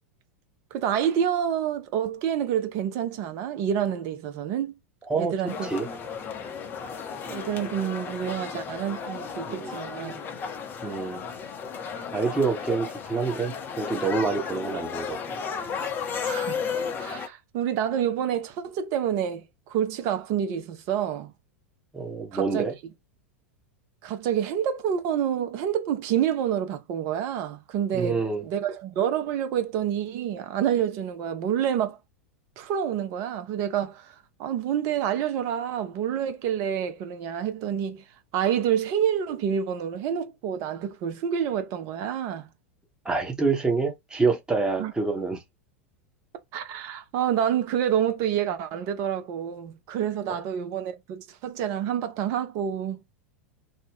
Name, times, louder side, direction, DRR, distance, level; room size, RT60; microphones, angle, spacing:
voice 1, 0.7-4.8 5.1-5.7 7.3-10.2 16.2-16.7 17.0-21.3 22.3-22.7 24.0-32.0 32.6-34.1 34.4-38.0 38.3-42.5 44.8-44.9 46.5-53.0, right 9 dB, 45° right, 0.6 m, -28 dB
sound 1, 5.5-17.3, left 6 dB, 30° left, 0.6 m, -34 dB
voice 2, 10.8-11.2 12.1-15.2 21.9-22.7 27.9-28.4 43.0-45.4, right 4 dB, 10° right, 0.8 m, -27 dB
2.7 x 2.0 x 3.3 m
figure-of-eight pair, 90°, 7 cm